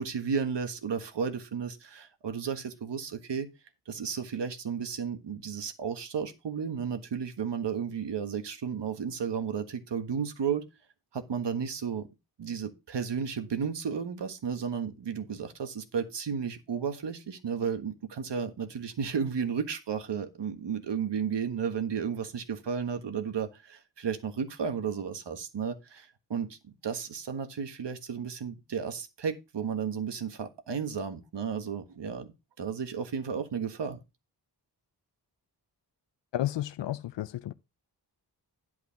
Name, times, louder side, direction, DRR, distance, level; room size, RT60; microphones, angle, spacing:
voice 1, 0.0-3.5 3.9-10.7 11.1-12.1 12.4-26.6 26.8-34.0, right 6 dB, 80° right, 1.5 m, -33 dB
voice 2, 36.3-37.5, left 13 dB, 90° left, 0.5 m, -32 dB
11.0 x 4.7 x 5.8 m
wide cardioid pair, 115°, 42 cm